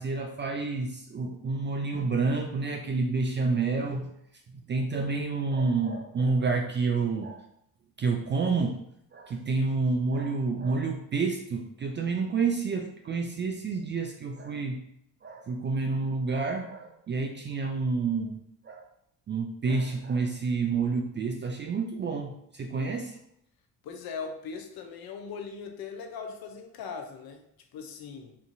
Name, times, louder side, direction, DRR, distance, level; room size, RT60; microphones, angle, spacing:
voice 1, 0.0-4.1 4.7-7.4 8.0-8.8 9.1-14.8 15.2-18.8 19.3-23.2, right 4 dB, 30° right, 3 dB, 0.3 m, -29 dB
voice 2, 23.8-27.5 27.7-28.4, left 5 dB, 55° left, 4 dB, 0.7 m, -39 dB
3.5 x 2.6 x 2.5 m, 0.74 s
hypercardioid pair, 45°, 45 cm